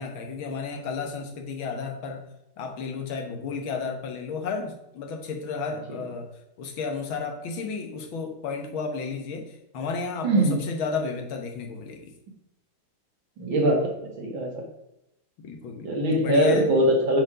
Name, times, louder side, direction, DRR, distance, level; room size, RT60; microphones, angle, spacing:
voice 1, 0.0-2.2 2.6-6.3 6.6-12.1 15.4-16.7, left 5 dB, 80° left, 3 dB, 2.0 m, -32 dB
voice 2, 10.2-10.6 13.4-14.5 15.8-17.2, right 1 dB, 70° right, -1 dB, 2.7 m, -22 dB
9.4 x 4.6 x 5.0 m, 0.87 s
omnidirectional pair, 2.2 m